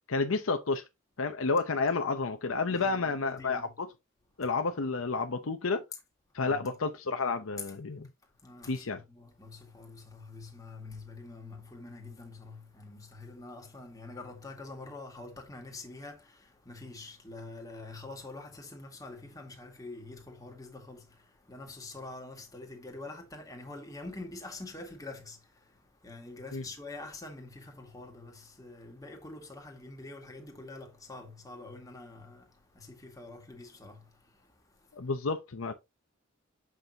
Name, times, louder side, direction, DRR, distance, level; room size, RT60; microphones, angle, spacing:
voice 1, 0.1-0.8 1.2-3.9 4.4-5.8 6.3-8.1 8.7-9.0 26.5-26.6 34.9-35.7, left 4 dB, 90° left, 0.8 m, -30 dB
voice 2, 2.7-3.7 6.4-6.7 8.4-35.1, left 2 dB, 15° left, 2.1 m, -46 dB
8.0 x 6.2 x 2.8 m
head